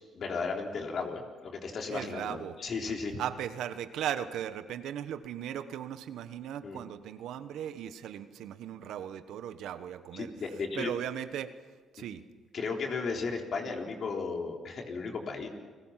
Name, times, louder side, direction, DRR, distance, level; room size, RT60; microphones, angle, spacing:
voice 1, 0.1-3.2 6.6-6.8 10.1-10.9 12.5-15.5, left 4 dB, 55° left, 1 dB, 3.9 m, -35 dB
voice 2, 1.9-2.6 3.2-10.3 10.7-11.5 11.9-12.2, right 10 dB, 80° right, 11 dB, 1.3 m, -37 dB
30.0 x 20.5 x 5.9 m, 1.5 s
cardioid pair, 90°, 0 cm